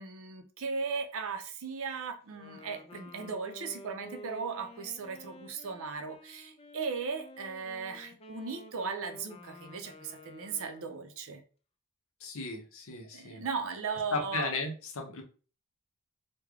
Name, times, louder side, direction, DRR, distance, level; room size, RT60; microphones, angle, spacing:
voice 1, 0.0-11.4 13.1-14.5, right 5 dB, 65° right, 6 dB, 0.6 m, -37 dB
Wind instrument woodwind instrument, 2.2-11.2, left 1 dB, 25° left, 0.4 m, -51 dB
voice 2, 12.2-13.4 14.1-15.2, left 3 dB, 65° left, 2 dB, 0.8 m, -35 dB
3.2 x 2.2 x 3.5 m, 0.38 s
head